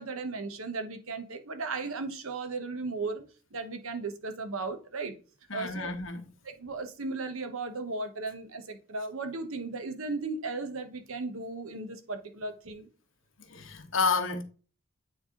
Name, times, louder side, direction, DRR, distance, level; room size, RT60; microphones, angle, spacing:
voice 1, 0.0-3.2 3.5-5.1 5.5-5.9 6.5-12.9, right 3 dB, 80° right, 1.0 m, -36 dB
voice 2, 5.5-6.3 13.4-14.4, left 4 dB, 65° left, 1.1 m, -30 dB
9.0 x 3.4 x 3.7 m
head